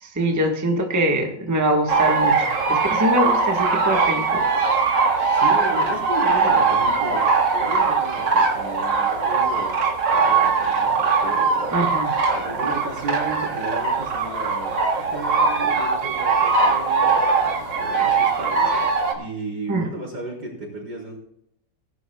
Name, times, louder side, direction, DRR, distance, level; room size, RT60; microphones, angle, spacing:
voice 1, 0.0-4.5 11.7-12.1 19.7-19.9, right 1 dB, 10° right, 1 dB, 1.4 m, -23 dB
sound 1, 1.9-19.1, right 4 dB, 80° right, 2.4 m, -21 dB
voice 2, 5.3-9.8 10.1-11.7 12.3-21.2, right 2 dB, 65° right, -3 dB, 5.2 m, -34 dB
19.5 x 11.0 x 2.3 m, 0.74 s
omnidirectional pair, 2.0 m